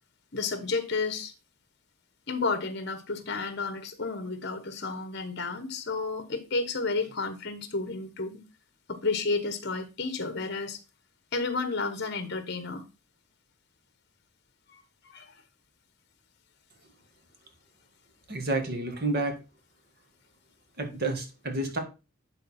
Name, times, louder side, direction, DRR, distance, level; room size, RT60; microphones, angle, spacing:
voice 1, 0.3-1.3 2.3-8.4 8.9-10.8 11.3-12.8 14.7-15.3, left 3 dB, 55° left, 1.2 m, -31 dB
voice 2, 18.3-19.4 20.8-21.8, right 2 dB, 50° right, 1.8 m, -30 dB
11.0 x 4.0 x 4.3 m
head